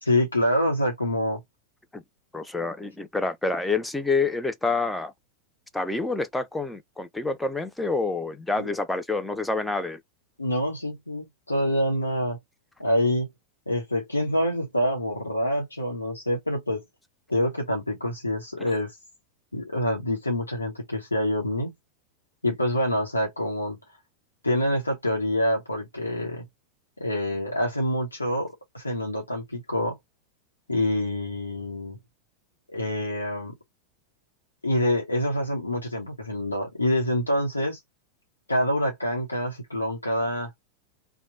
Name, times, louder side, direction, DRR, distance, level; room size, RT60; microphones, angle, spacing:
voice 1, 0.0-1.4 10.4-12.4 12.8-13.3 13.7-16.8 17.3-19.0 19.5-21.7 22.4-23.8 24.4-26.4 27.0-30.0 30.7-32.0 32.7-33.5 34.6-37.8 38.5-40.5, left 1 dB, 80° left, 0.9 m, -26 dB
voice 2, 2.3-5.1 5.7-10.0 18.6-18.7, left 3 dB, 5° left, 0.6 m, -27 dB
2.9 x 2.2 x 4.0 m
figure-of-eight pair, 90°, 0 cm